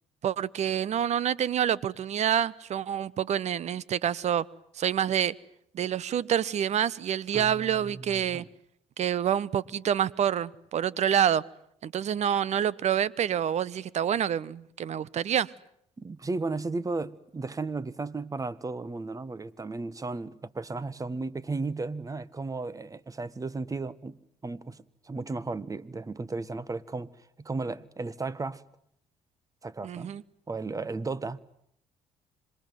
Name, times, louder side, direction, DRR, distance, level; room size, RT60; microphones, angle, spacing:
voice 1, 0.2-4.5 4.7-5.3 5.7-8.5 9.0-11.4 11.8-15.5 29.8-30.2, right 9 dB, 55° right, 1.1 m, -27 dB
voice 2, 7.3-8.5 16.0-24.2 24.4-27.1 27.4-28.6 29.6-30.2 30.5-31.4, right 3 dB, 25° right, 1.6 m, -34 dB
26.5 x 23.5 x 9.4 m
supercardioid pair, 65°, 14 cm